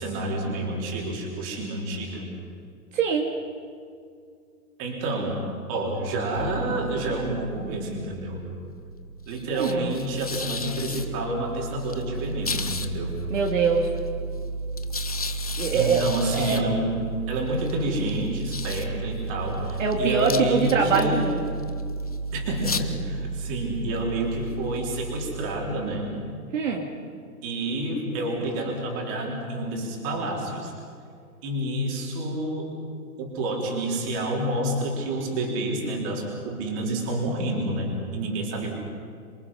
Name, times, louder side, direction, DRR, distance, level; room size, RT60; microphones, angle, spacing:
voice 1, 0.0-2.3 4.8-5.4 5.7-8.4 9.3-13.2 15.7-16.9 17.3-21.3 22.3-26.1 27.4-30.7 31.4-32.7 33.2-38.8, right 1 dB, 25° right, -1 dB, 3.9 m, -29 dB
voice 2, 2.9-3.4 9.5-9.9 13.3-13.9 15.6-16.6 19.8-21.4 26.5-26.9, right 5 dB, 55° right, 1 dB, 2.5 m, -23 dB
sound 1, 6.3-26.2, right 1 dB, 25° left, 0.5 m, -33 dB
27.0 x 23.0 x 5.7 m, 2.3 s
hypercardioid pair, 165°, 45 cm